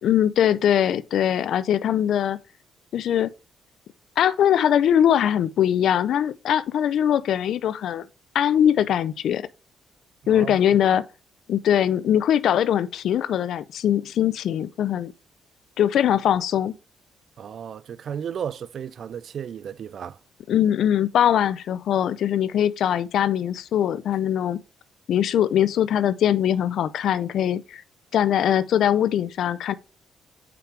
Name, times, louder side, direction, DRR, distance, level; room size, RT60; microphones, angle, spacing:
voice 1, 0.0-2.4 2.9-3.3 4.2-8.1 8.3-9.5 10.3-11.0 11.5-15.1 15.8-16.7 20.5-24.6 25.1-27.8 28.1-29.7, left 10 dB, 70° left, 0.4 m, -21 dB
voice 2, 10.2-10.8 17.4-20.2, right 8 dB, 60° right, 0.3 m, -34 dB
5.8 x 5.1 x 3.3 m
cardioid pair, 90°, 0 cm